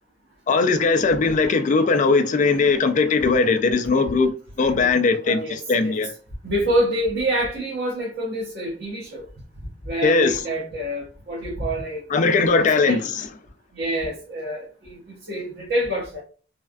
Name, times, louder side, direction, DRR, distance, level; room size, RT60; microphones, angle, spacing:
voice 1, 0.5-4.3 4.6-6.1 10.0-10.4 12.1-13.3, left 4 dB, 45° left, 0.3 m, -19 dB
voice 2, 5.2-5.9 6.4-9.2 9.8-12.4 12.8-13.0 13.7-16.2, right 1 dB, 65° right, 1.0 m, -27 dB
3.3 x 2.2 x 2.4 m
head